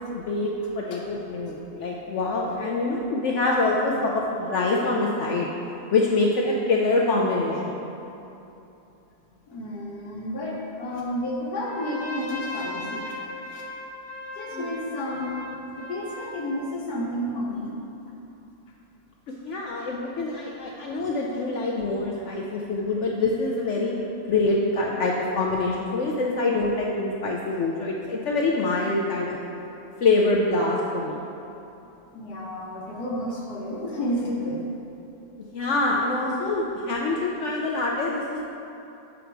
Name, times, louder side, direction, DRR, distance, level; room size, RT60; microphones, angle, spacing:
voice 1, 0.0-5.5 5.9-7.8 14.5-14.7 19.4-24.0 24.3-29.4 30.0-31.3 35.5-38.4, left 2 dB, 65° left, -2 dB, 0.8 m, -25 dB
voice 2, 9.5-13.2 13.5-13.6 14.3-17.7 32.1-34.6, equal, 85° left, -4 dB, 1.6 m, -31 dB
Trumpet, 11.6-16.6, left 2 dB, 30° left, 0.4 m, -37 dB
7.4 x 5.1 x 4.5 m, 2.9 s
omnidirectional pair, 1.6 m